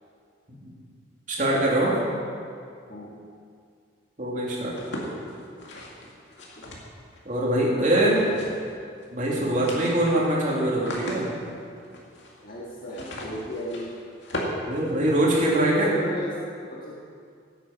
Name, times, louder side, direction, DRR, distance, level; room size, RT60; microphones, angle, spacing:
voice 1, 1.3-2.0 4.2-4.7 7.2-8.3 9.1-11.3 14.7-15.9, right 1 dB, 40° right, -4 dB, 2.9 m, -23 dB
sound 1, 4.7-7.2 7.8-8.7 9.0-9.1 9.4-15.5, left 1 dB, 70° left, 2.2 m, -37 dB
voice 2, 12.4-14.0 15.3-16.9, equal, 50° left, -5 dB, 1.7 m, -33 dB
15.5 x 8.7 x 6.0 m, 2.3 s
head